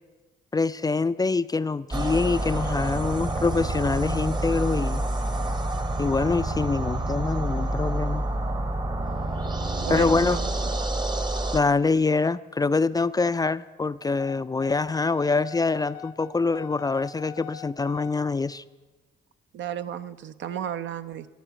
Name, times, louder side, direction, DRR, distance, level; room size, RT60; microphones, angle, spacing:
voice 1, 0.5-5.0 6.0-8.2 9.9-10.4 11.5-18.6, left 4 dB, 20° left, 14 dB, 0.3 m, -25 dB
sound 1, 1.9-11.6, right 2 dB, 20° right, 0.9 m, -28 dB
voice 2, 9.8-10.7 19.5-21.3, right 9 dB, 70° right, 11 dB, 0.7 m, -33 dB
sound 2, 14.2-18.2, left 10 dB, 75° left, 0.7 m, -42 dB
13.5 x 8.5 x 8.1 m, 1.2 s
cardioid pair, 90°, 20 cm